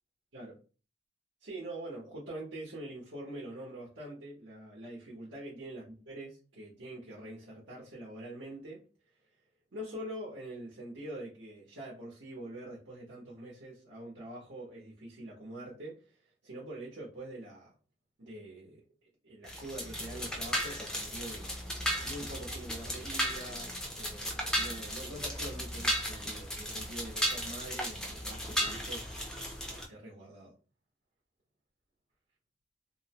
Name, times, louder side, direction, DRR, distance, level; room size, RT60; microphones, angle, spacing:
voice 1, 1.4-8.8 9.7-17.7 18.2-18.8 19.2-21.4 22.0-29.3 29.7-30.5, right 1 dB, 80° right, -5 dB, 0.9 m, -44 dB
sound 1, 19.4-29.8, equal, 5° left, 0.4 m, -35 dB
2.7 x 2.0 x 2.8 m, 0.36 s
head